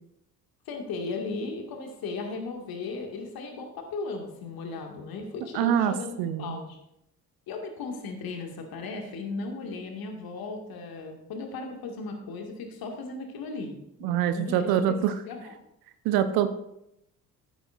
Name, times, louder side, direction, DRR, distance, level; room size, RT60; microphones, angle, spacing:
voice 1, 0.7-6.8 7.5-13.7 14.0-15.5, left 3 dB, 50° left, 3 dB, 2.1 m, -36 dB
voice 2, 5.5-5.9 6.2-6.6 14.0-15.1 16.0-16.5, right 10 dB, 50° right, 11 dB, 0.8 m, -24 dB
14.5 x 8.0 x 2.5 m, 0.81 s
figure-of-eight pair, 50°, 47 cm